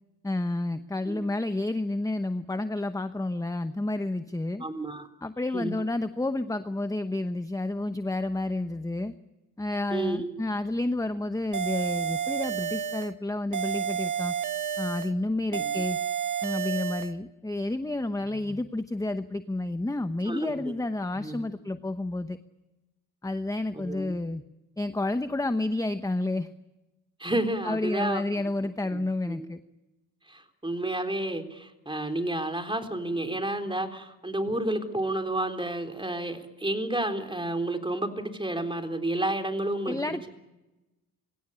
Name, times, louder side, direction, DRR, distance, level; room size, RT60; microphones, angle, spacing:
voice 1, 0.2-4.7 5.2-9.1 9.6-14.3 14.8-16.0 16.4-22.4 23.2-24.4 24.8-26.5 27.6-29.6 39.8-40.3, left 2 dB, 10° left, 10 dB, 0.9 m, -30 dB
voice 2, 4.6-5.1 5.5-5.8 9.9-10.4 15.5-15.8 18.3-18.5 20.3-20.8 21.2-21.5 23.7-24.2 27.2-28.2 28.9-29.0 29.3-29.5 30.3-40.3, right 1 dB, 15° right, 5 dB, 3.7 m, -31 dB
sound 1, 11.5-13.1 13.5-15.1 15.5-17.1, right 8 dB, 60° right, 1.5 m, -30 dB
23.0 x 17.0 x 9.9 m, 1.0 s
cardioid pair, 65°, 35 cm